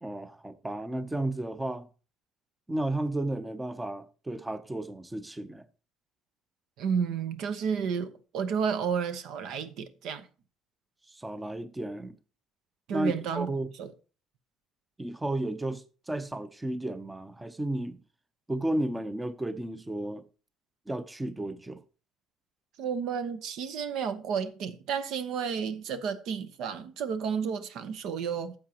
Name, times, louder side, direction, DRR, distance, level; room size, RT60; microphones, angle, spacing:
voice 1, 0.0-1.9 2.7-5.6 11.1-12.2 12.9-13.7 15.0-18.0 18.5-20.2 20.9-21.8, right 1 dB, 15° right, 0.7 m, -33 dB
voice 2, 6.8-10.3 12.9-13.5 13.8-13.9 22.8-28.5, right 6 dB, 70° right, 0.9 m, -31 dB
12.5 x 7.4 x 2.9 m
supercardioid pair, 85°, 0 cm